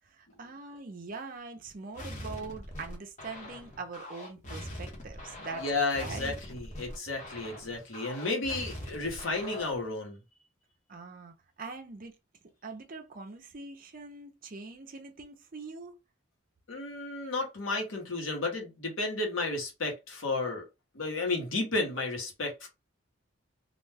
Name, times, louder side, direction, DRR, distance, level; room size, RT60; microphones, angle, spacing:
voice 1, 0.0-6.4 10.9-12.2 12.6-15.9, right 4 dB, 45° right, 0.5 m, -43 dB
sound 1, 1.9-9.9, left 1 dB, 35° left, 0.9 m, -42 dB
voice 2, 5.6-10.2 16.7-20.6 20.9-22.7, left 3 dB, 80° left, 1.1 m, -32 dB
2.4 x 2.2 x 3.3 m
head